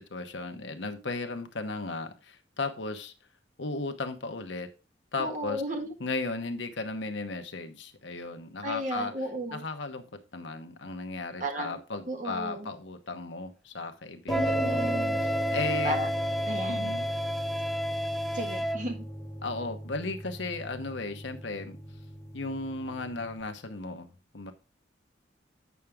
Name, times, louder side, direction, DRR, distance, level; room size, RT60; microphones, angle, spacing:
voice 1, 0.0-3.1 3.6-4.7 5.1-5.6 6.0-9.1 9.5-15.0 15.2-16.0 16.7-17.1 19.4-21.8 22.3-24.5, left 3 dB, 75° left, 7 dB, 1.0 m, -35 dB
voice 2, 5.2-5.9 8.6-9.6 11.4-12.7 14.3-15.2 15.8-16.1 16.5-16.9 18.3-19.0, right 1 dB, 40° right, 3 dB, 1.5 m, -34 dB
sound 1, 14.3-23.4, right 1 dB, 20° left, 1.7 m, -36 dB
Wind instrument woodwind instrument, 14.3-18.8, equal, ahead, 0.4 m, -31 dB
8.3 x 5.9 x 3.5 m, 0.32 s
head